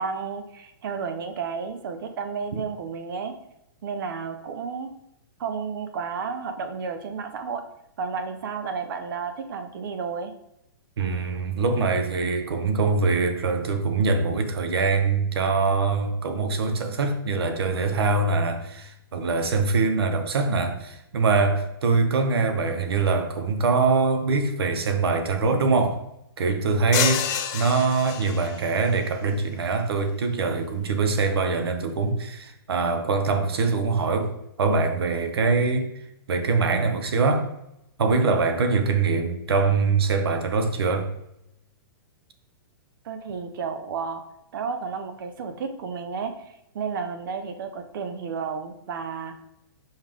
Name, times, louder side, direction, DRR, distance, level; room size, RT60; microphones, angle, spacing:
voice 1, 0.0-3.3 3.8-4.9 5.4-7.6 8.0-10.3 43.0-44.2 44.5-49.3, right 5 dB, 60° right, 1.0 m, -32 dB
voice 2, 11.0-26.0 26.4-35.9 36.3-37.5 38.0-41.1, right 4 dB, 80° right, 1.1 m, -23 dB
sound 1, 26.9-28.7, left 9 dB, 25° left, 0.6 m, -28 dB
5.6 x 5.4 x 3.7 m
hypercardioid pair, 150°, 13 cm